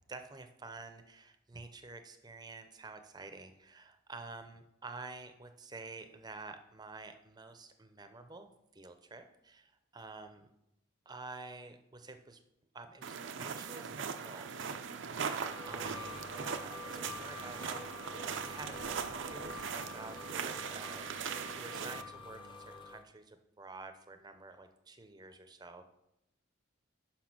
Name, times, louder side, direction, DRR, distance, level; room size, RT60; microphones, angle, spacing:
voice 1, 0.1-10.5 11.1-12.4 12.7-17.8 18.4-25.9, right 3 dB, 20° right, 7 dB, 0.6 m, -49 dB
sound 1, 13.0-22.0, right 6 dB, 65° right, 0.5 m, -40 dB
sound 2, 15.2-23.0, left 3 dB, 25° left, 0.7 m, -48 dB
6.1 x 5.7 x 5.9 m, 0.82 s
head